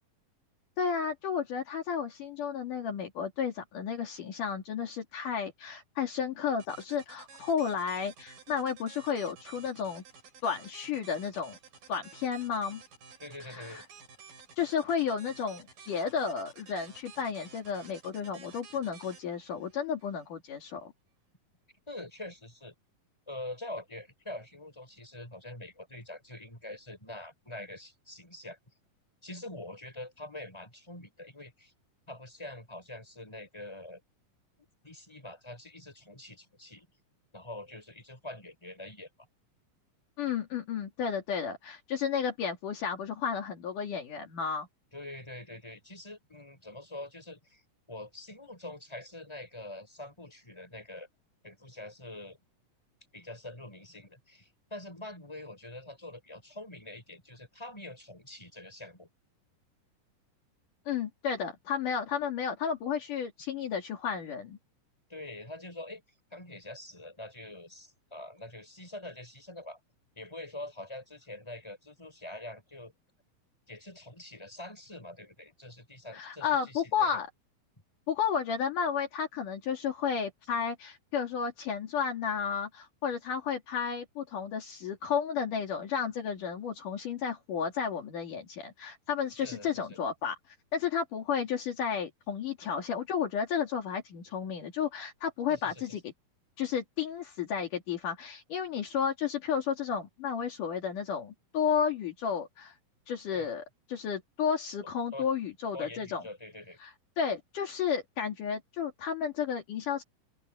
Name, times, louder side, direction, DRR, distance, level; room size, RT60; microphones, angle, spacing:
voice 1, 0.8-10.0 10.4-11.6 11.9-12.8 13.5-13.8 14.6-20.9 40.2-44.7 60.9-64.6 76.1-77.3 78.1-96.0 96.6-102.7 103.1-106.2 106.8-110.0, left 7 dB, 65° left, 3.8 m, -32 dB
sound 1, 6.6-20.3, right 5 dB, 75° right, 6.6 m, -53 dB
voice 2, 13.2-13.8 21.9-22.7 23.3-28.6 29.2-31.7 32.1-34.0 34.8-36.9 37.3-39.1 44.9-47.6 47.9-51.1 51.4-52.4 53.1-59.1 65.1-66.0 66.3-69.8 70.2-72.9 73.7-77.2 89.4-90.0 95.5-95.8 103.3-103.5 105.1-105.3 105.7-106.8, left 1 dB, 5° left, 6.9 m, -45 dB
open air
omnidirectional pair, 4.1 m